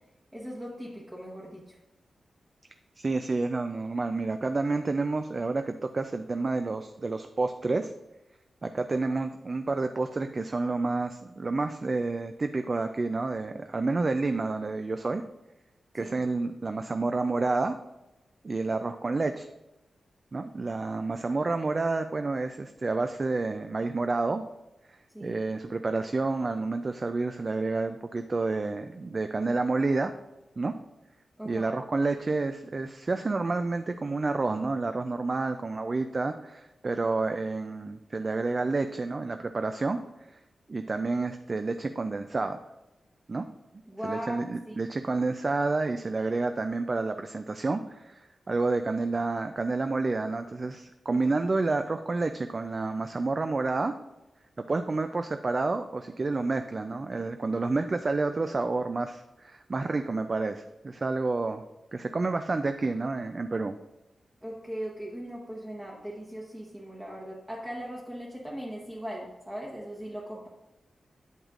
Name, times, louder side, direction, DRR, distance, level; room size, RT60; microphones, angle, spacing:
voice 1, 0.3-1.8 15.9-16.2 25.1-25.4 31.4-31.8 43.9-44.9 64.4-70.5, equal, 10° right, -4 dB, 1.0 m, -39 dB
voice 2, 3.0-7.9 8.6-15.2 15.9-17.8 18.4-19.5 20.3-24.4 24.9-30.1 30.6-30.7 31.5-40.0 40.3-40.4 40.7-42.6 43.3-43.4 44.0-53.9 54.7-61.6 61.9-63.7, right 3 dB, 30° right, 7 dB, 0.3 m, -29 dB
8.8 x 8.0 x 2.5 m, 0.98 s
wide cardioid pair, 165°, 0 cm